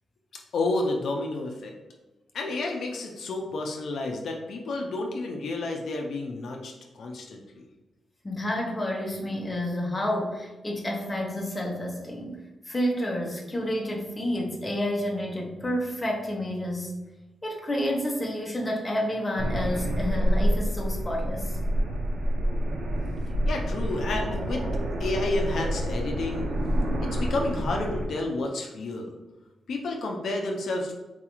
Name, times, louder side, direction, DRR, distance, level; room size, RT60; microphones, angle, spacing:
voice 1, 0.5-1.7 2.3-7.7 23.5-24.6 25.0-26.5 27.0-29.1 29.7-30.9, left 2 dB, 65° left, 1 dB, 0.4 m, -30 dB
voice 2, 8.2-16.9 17.4-21.6, left 1 dB, 15° left, -1 dB, 0.6 m, -30 dB
sound 1, 19.4-28.1, equal, 75° right, 0.6 m, -27 dB
4.0 x 2.3 x 2.9 m, 1.1 s
wide cardioid pair, 155°, 0 cm